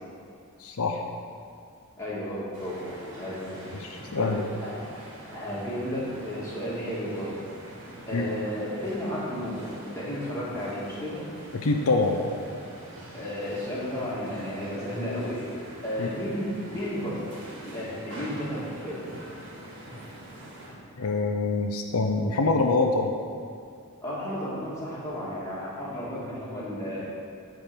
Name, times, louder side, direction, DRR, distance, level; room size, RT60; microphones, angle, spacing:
voice 1, 0.6-1.0 3.8-4.4 8.1-8.3 11.5-12.2 16.0-16.1 21.0-23.1, left 3 dB, 80° left, 3 dB, 0.6 m, -25 dB
voice 2, 2.0-3.6 4.2-4.8 5.2-7.4 8.1-11.2 13.1-15.4 15.8-17.3 17.6-19.0 24.0-27.0, equal, 15° left, -8 dB, 2.0 m, -33 dB
sound 1, 2.5-20.8, right 1 dB, 60° right, 2.3 m, -44 dB
9.9 x 3.8 x 6.9 m, 2.3 s
head